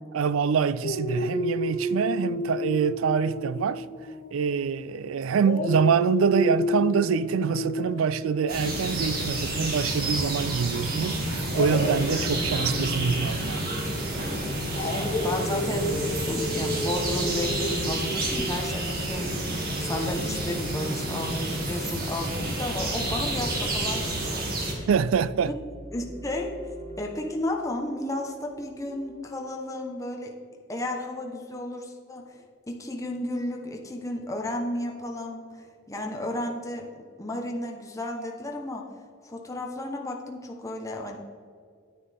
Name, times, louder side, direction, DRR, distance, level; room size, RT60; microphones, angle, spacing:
voice 1, 0.1-3.8 4.3-13.7 24.9-25.5, right 6 dB, 75° right, 0.4 m, -25 dB
Dog, 0.8-5.0 5.4-10.4 11.5-18.5, equal, 40° left, 1.0 m, -32 dB
sound 1, 8.5-24.7, right 1 dB, 45° right, 1.9 m, -29 dB
sound 2, 11.6-29.1, right 1 dB, 30° right, 2.6 m, -43 dB
voice 2, 14.8-24.5 24.7-24.9 25.9-26.5 27.0-30.3 30.7-38.8 39.2-41.2, left 1 dB, 15° left, 0.9 m, -33 dB
10.0 x 9.6 x 3.4 m
head